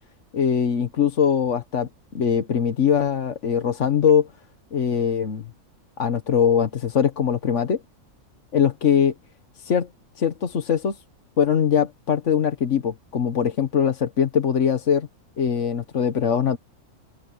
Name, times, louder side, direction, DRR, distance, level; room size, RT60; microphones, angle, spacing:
voice 1, 0.3-1.9 2.1-4.3 4.7-5.5 6.0-7.8 8.5-9.1 9.6-9.9 10.2-11.0 11.4-15.1 15.4-16.6, left 7 dB, 55° left, 1.5 m, -21 dB
open air
omnidirectional pair, 1.5 m